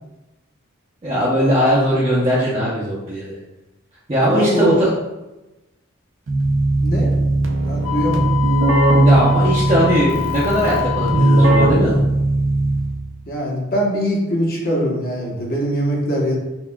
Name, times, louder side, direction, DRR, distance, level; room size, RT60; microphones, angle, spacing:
voice 1, 1.0-3.4 4.1-4.9 9.0-12.0, equal, 30° right, -8 dB, 0.6 m, -19 dB
voice 2, 4.4-4.8 6.8-7.1 7.6-8.3 13.3-16.4, equal, 45° left, -2 dB, 0.9 m, -22 dB
Keyboard (musical), 6.3-13.1, right 2 dB, 65° right, 0.6 m, -18 dB
Wind instrument woodwind instrument, 7.8-11.6, left 17 dB, 85° left, 0.3 m, -27 dB
5.7 x 2.3 x 2.2 m, 1.0 s
head